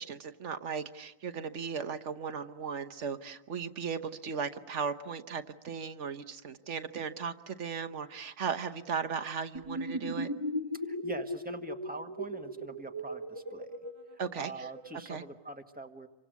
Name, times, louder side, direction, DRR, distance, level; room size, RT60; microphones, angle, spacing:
voice 1, 0.0-10.3 14.2-14.5 15.1-15.2, right 6 dB, 90° right, 10 dB, 1.5 m, -36 dB
sound 1, 9.5-14.9, equal, 25° right, 1.4 m, -38 dB
voice 2, 10.9-13.7 14.1-16.1, right 2 dB, 10° right, 4 dB, 1.8 m, -44 dB
28.0 x 24.5 x 8.2 m, 0.97 s
omnidirectional pair, 1.2 m